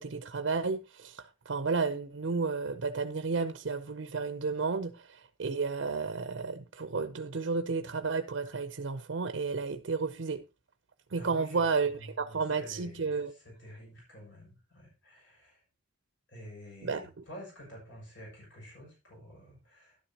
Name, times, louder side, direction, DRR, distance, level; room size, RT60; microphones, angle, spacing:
voice 1, 0.0-10.4 11.1-13.3 16.8-17.0, right 4 dB, 85° right, 0.6 m, -32 dB
voice 2, 11.1-15.6 16.3-20.0, equal, 75° left, 6.7 m, -49 dB
11.5 x 10.0 x 2.9 m
head